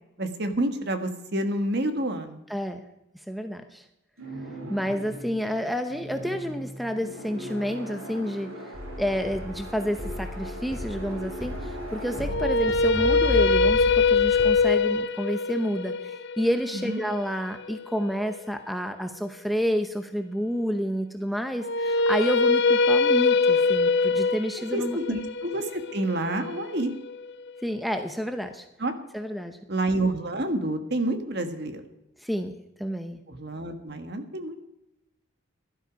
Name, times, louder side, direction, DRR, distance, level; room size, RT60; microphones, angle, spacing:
voice 1, 0.2-2.4 16.8-17.0 24.6-26.9 28.8-28.9 29.7-31.8 33.3-34.5, right 1 dB, 50° right, 7 dB, 1.5 m, -28 dB
voice 2, 2.5-2.8 3.3-3.8 4.7-8.5 9.0-25.0 27.6-28.7 29.1-29.6 32.2-33.2, equal, ahead, 7 dB, 0.7 m, -29 dB
sound 1, 4.2-14.1, right 1 dB, 85° right, 5.1 m, -40 dB
sound 2, 8.7-14.5, left 1 dB, 20° left, 3.9 m, -34 dB
sound 3, 12.2-18.4 21.6-27.7, left 4 dB, 55° left, 0.5 m, -23 dB
16.5 x 12.0 x 5.2 m, 0.89 s
head